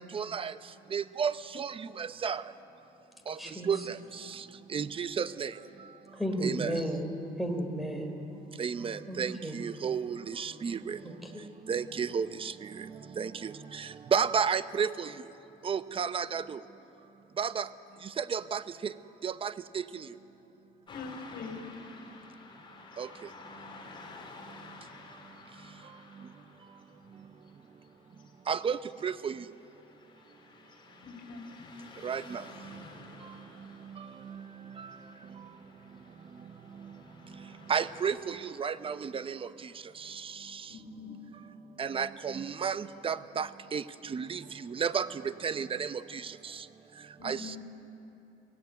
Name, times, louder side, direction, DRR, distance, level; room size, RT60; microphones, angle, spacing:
voice 1, 0.1-0.5 0.9-2.4 3.3-3.4 3.7-3.8 4.7-5.5 6.4-6.8 8.6-11.0 11.7-12.5 13.2-15.1 15.6-16.6 17.4-17.7 18.2-18.9 19.2-19.5 23.0-23.1 28.5-28.8 29.0-29.3 32.0-32.4 37.7-39.4 41.8-43.8 44.1-44.4 44.7-45.1 45.4-46.0 47.2-47.4, right 6 dB, 30° right, 13 dB, 0.8 m, -32 dB
voice 2, 3.4-3.7 6.1-7.1 7.4-8.1 9.1-9.5 11.0-11.4, equal, ahead, 4 dB, 3.3 m, -34 dB
voice 3, 20.9-21.6 31.0-31.4 40.7-41.3 47.2-47.6, left 4 dB, 60° left, 5 dB, 3.3 m, -43 dB
Car passing by / Traffic noise roadway noise, 20.9-38.2, left 3 dB, 30° left, 3.7 m, -52 dB
23.5 x 16.5 x 9.6 m, 3.0 s
cardioid pair, 110°, 17 cm